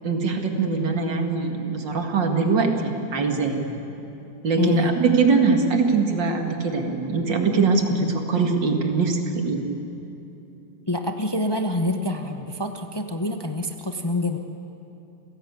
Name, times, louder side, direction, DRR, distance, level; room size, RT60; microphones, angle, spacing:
voice 1, 0.0-3.7 4.4-9.7, right 4 dB, 90° right, 3 dB, 2.7 m, -22 dB
voice 2, 4.6-4.9 10.9-14.4, left 1 dB, 20° left, 5 dB, 0.8 m, -26 dB
28.5 x 17.0 x 8.3 m, 2.9 s
omnidirectional pair, 1.9 m